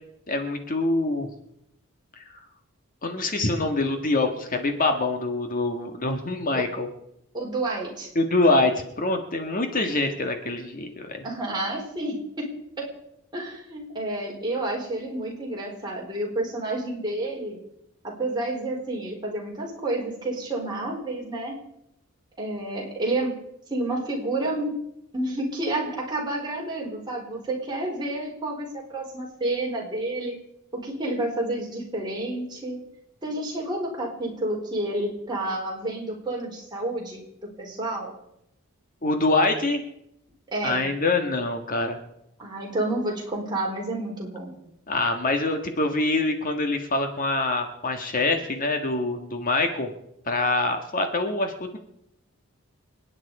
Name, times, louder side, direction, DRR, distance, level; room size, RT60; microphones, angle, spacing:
voice 1, 0.3-1.3 3.0-6.9 8.1-11.2 39.0-39.8 40.6-42.0 44.9-49.9 50.2-51.8, left 2 dB, 40° left, 5 dB, 1.6 m, -25 dB
voice 2, 7.3-8.1 11.2-12.9 13.3-17.6 18.0-21.5 22.4-23.4 23.7-24.7 25.1-30.4 30.7-32.8 33.2-37.2 37.6-38.1 40.5-40.9 42.4-44.5, right 2 dB, 20° right, -2 dB, 4.4 m, -30 dB
29.0 x 9.9 x 4.9 m, 0.81 s
head